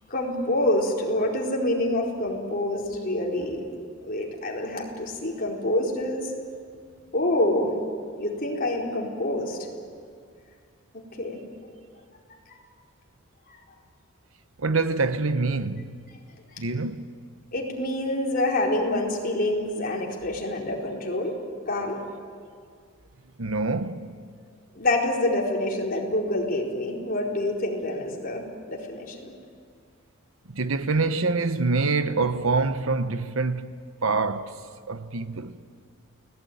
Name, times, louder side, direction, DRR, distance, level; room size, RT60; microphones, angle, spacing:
voice 1, 0.1-3.6 4.0-6.3 7.1-7.7 8.2-9.6 10.9-11.4 12.3-12.6 13.5-13.6 16.5-16.6 17.5-21.3 21.7-22.0 24.7-29.3, left 1 dB, 45° left, 4.5 m, -27 dB
voice 2, 14.6-16.0 16.6-17.2 23.4-24.1 30.5-33.7 34.0-34.6 34.9-35.6, right 3 dB, 75° right, 1.1 m, -26 dB
29.5 x 19.5 x 9.5 m
head